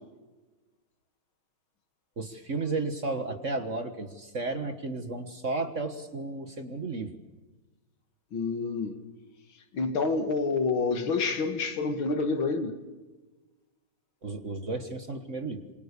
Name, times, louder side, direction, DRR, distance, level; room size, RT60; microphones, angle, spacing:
voice 1, 2.2-7.2 14.2-15.6, right 3 dB, 40° right, 1.7 m, -33 dB
voice 2, 8.3-9.0 9.7-12.7, left 4 dB, 70° left, 2.5 m, -28 dB
27.5 x 23.5 x 6.9 m
omnidirectional pair, 2.3 m